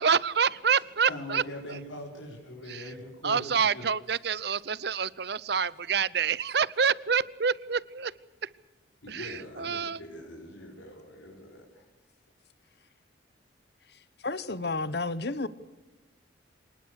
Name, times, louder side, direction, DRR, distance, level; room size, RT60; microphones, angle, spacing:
voice 1, 0.0-1.4 1.7-1.8 2.7-2.8 3.2-8.1 8.4-8.5 9.1-10.0, right 6 dB, 55° right, 0.7 m, -27 dB
voice 2, 1.0-3.9 9.0-11.8, left 1 dB, 85° left, 5.0 m, -42 dB
voice 3, 14.2-15.5, left 3 dB, 55° left, 1.2 m, -31 dB
25.5 x 19.5 x 6.5 m
head